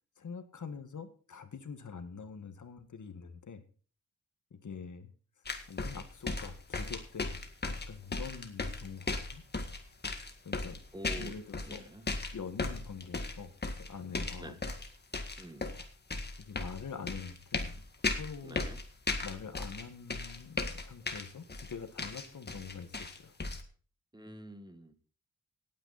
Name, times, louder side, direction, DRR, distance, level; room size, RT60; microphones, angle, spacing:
voice 1, 0.2-3.6 4.5-5.1 5.7-9.4 10.4-10.8 11.2-11.8 12.3-14.6 16.4-17.7 18.1-18.6 19.2-23.3, left 6 dB, 60° left, 9 dB, 1.7 m, -45 dB
sound 1, 5.4-11.8 12.1-14.9 15.1-19.8 20.1-23.6, left 3 dB, 30° left, 1.8 m, -36 dB
voice 2, 10.9-11.4 11.7-12.0 14.2-14.6 15.4-15.7 18.4-18.8 24.1-24.9, equal, 15° right, 8 dB, 1.6 m, -47 dB
18.0 x 9.3 x 4.1 m, 0.41 s
wide cardioid pair, 160°, 33 cm